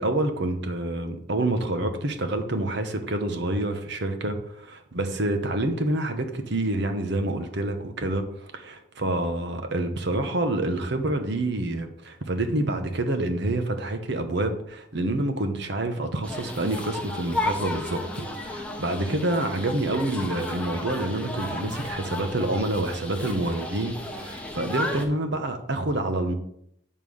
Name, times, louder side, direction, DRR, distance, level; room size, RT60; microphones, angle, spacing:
voice 1, 0.0-18.0 18.3-26.3, right 1 dB, 55° right, 7 dB, 0.9 m, -27 dB
sound 1, 16.2-25.0, left 1 dB, 5° left, 0.8 m, -33 dB
8.8 x 3.7 x 6.4 m, 0.72 s
head